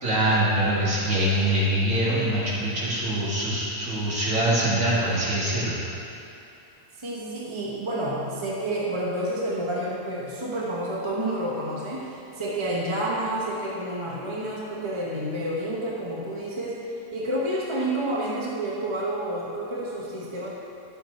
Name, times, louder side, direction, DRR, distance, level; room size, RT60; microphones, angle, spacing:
voice 1, 0.0-5.8, right 1 dB, 55° right, -8 dB, 2.6 m, -24 dB
voice 2, 7.0-20.5, right 1 dB, 20° right, -5 dB, 1.0 m, -29 dB
11.0 x 7.2 x 4.3 m, 2.6 s
omnidirectional pair, 1.7 m